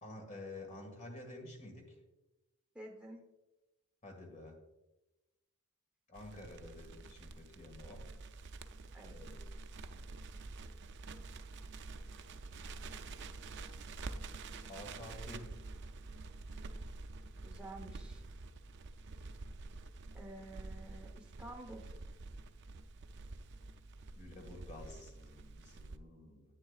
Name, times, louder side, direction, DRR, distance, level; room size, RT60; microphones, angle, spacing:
voice 1, 0.0-2.0 4.0-4.6 6.1-8.1 9.0-9.3 12.9-13.0 14.7-15.5 24.2-26.4, left 2 dB, 35° left, 2 dB, 1.8 m, -50 dB
voice 2, 2.7-3.2 8.9-9.2 17.4-18.2 20.1-21.9, right 1 dB, 5° right, -1 dB, 0.9 m, -50 dB
Crackle, 6.1-26.0, right 3 dB, 55° right, 0.4 m, -48 dB
10.5 x 8.8 x 2.4 m, 1.0 s
head